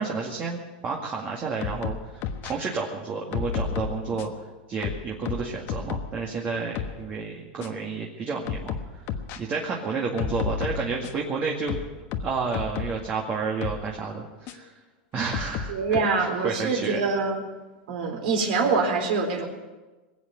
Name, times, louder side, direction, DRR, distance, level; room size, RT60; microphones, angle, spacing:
voice 1, 0.0-4.3 4.7-8.8 9.4-11.8 12.2-14.7 15.1-17.0, right 4 dB, 30° right, -1 dB, 2.1 m, -31 dB
sound 1, 1.6-2.5 3.3-4.4 4.8-6.2 6.5-7.0 7.6-7.7 8.5-9.4 10.2-11.3 11.7-13.0 13.6-13.8 14.5-14.6 15.3-16.0, left 7 dB, 50° left, 1.3 m, -32 dB
voice 2, 15.7-17.4 17.9-19.4, right 4 dB, 70° right, 3 dB, 3.9 m, -25 dB
21.0 x 8.4 x 8.1 m, 1.2 s
supercardioid pair, 130°, 5 cm